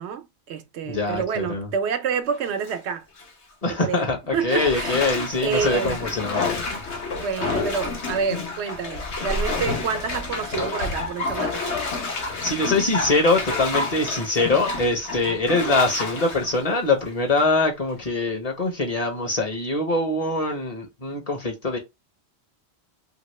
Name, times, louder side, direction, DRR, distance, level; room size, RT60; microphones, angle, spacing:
voice 1, 0.0-3.1 3.8-4.1 4.3-6.0 7.2-11.9, right 6 dB, 85° right, 0.9 m, -28 dB
voice 2, 0.8-1.7 3.6-6.8 12.4-21.8, left 2 dB, 40° left, 0.8 m, -23 dB
Bathtub (filling or washing), 2.3-2.7 3.2-3.3 4.5-17.6 18.0-18.1, left 3 dB, 85° left, 1.1 m, -29 dB
2.9 x 2.9 x 3.1 m
omnidirectional pair, 1.1 m